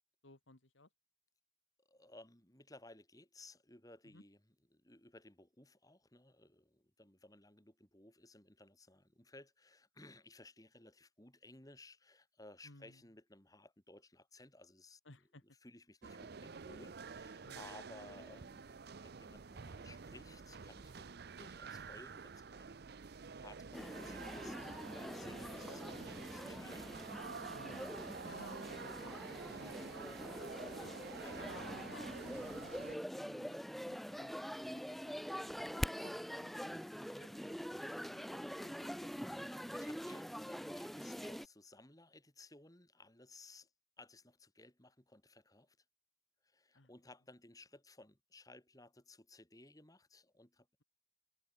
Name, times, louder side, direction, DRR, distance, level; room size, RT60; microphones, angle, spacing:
voice 1, 0.2-0.9 4.0-4.2 12.6-13.0 15.1-15.4 17.4-17.8 27.5-30.9 31.4-39.1 46.7-46.9, left 2 dB, 65° left, 2.3 m, -59 dB
voice 2, 1.8-4.4 4.7-15.0 15.6-22.8 23.4-27.0 31.2-31.4 39.3-43.7 44.0-45.8 46.4-50.8, left 2 dB, 15° left, 3.2 m, -59 dB
sound 1, 16.0-33.0, right 5 dB, 50° right, 0.6 m, -49 dB
sound 2, 23.7-41.5, equal, ahead, 0.6 m, -44 dB
head